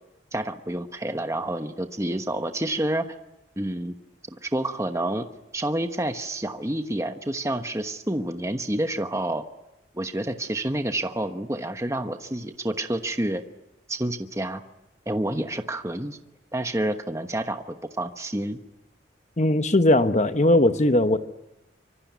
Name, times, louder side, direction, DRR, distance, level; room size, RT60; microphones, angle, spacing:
voice 1, 0.3-3.1 3.6-3.9 4.3-5.2 5.5-9.5 9.9-13.4 13.9-14.6 15.1-16.2 16.5-18.6, right 1 dB, 15° right, 7 dB, 1.1 m, -28 dB
voice 2, 19.4-21.2, left 1 dB, 40° left, 9 dB, 1.0 m, -19 dB
25.5 x 24.5 x 9.4 m, 0.94 s
head